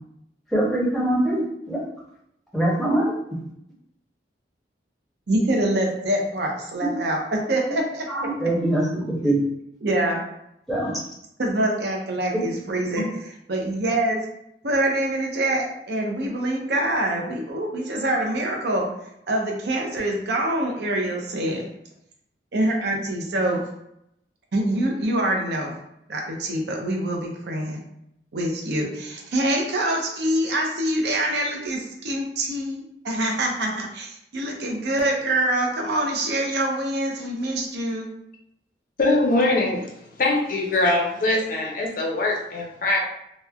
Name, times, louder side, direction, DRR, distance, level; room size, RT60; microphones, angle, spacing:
voice 1, 0.5-1.8 2.5-3.1 6.8-6.9 8.1-9.4 10.7-10.9 12.3-12.4 13.0-13.1, right 1 dB, ahead, -6 dB, 0.7 m, -23 dB
voice 2, 5.3-8.1 9.8-10.2 11.4-14.2 14.6-18.9 19.3-21.6 22.5-23.6 24.5-25.8 26.1-27.8 28.3-38.1, right 1 dB, 70° right, 0 dB, 0.6 m, -25 dB
voice 3, 39.0-39.9 40.2-43.0, left 2 dB, 50° left, 0 dB, 0.5 m, -22 dB
2.9 x 2.1 x 2.3 m, 0.77 s
head